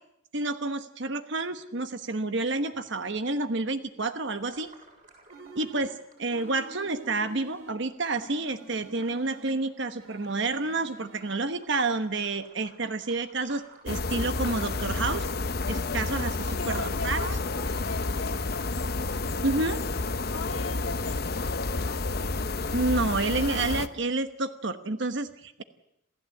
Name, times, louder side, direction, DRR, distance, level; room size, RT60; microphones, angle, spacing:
voice 1, 0.3-4.7 5.5-15.2 15.7-17.3 19.4-19.8 22.7-25.6, right 3 dB, 60° right, 9 dB, 1.1 m, -29 dB
sound 1, 4.4-19.6, right 3 dB, 40° right, 7.2 m, -57 dB
sound 2, 5.3-6.0 6.3-7.8 8.2-9.7 10.0-11.3, right 2 dB, 80° right, 3.5 m, -48 dB
sound 3, 13.9-23.9, left 3 dB, 50° left, 0.9 m, -30 dB
voice 2, 16.5-19.0 20.2-22.3, left 3 dB, 85° left, 7 dB, 1.9 m, -40 dB
27.5 x 15.5 x 8.5 m, 0.82 s
head